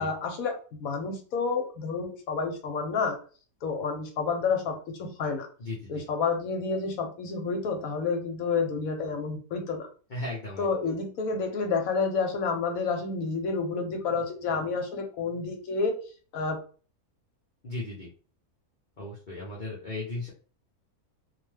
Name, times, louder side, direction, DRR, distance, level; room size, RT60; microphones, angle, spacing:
voice 1, 0.0-3.2 3.6-5.5 5.9-9.9 10.6-16.0 16.3-16.6, left 4 dB, 70° left, 4 dB, 1.0 m, -29 dB
voice 2, 5.6-6.0 10.1-10.7 17.6-18.1 19.0-20.3, left 2 dB, 50° left, -5 dB, 0.6 m, -36 dB
2.6 x 2.1 x 3.2 m, 0.39 s
omnidirectional pair, 1.6 m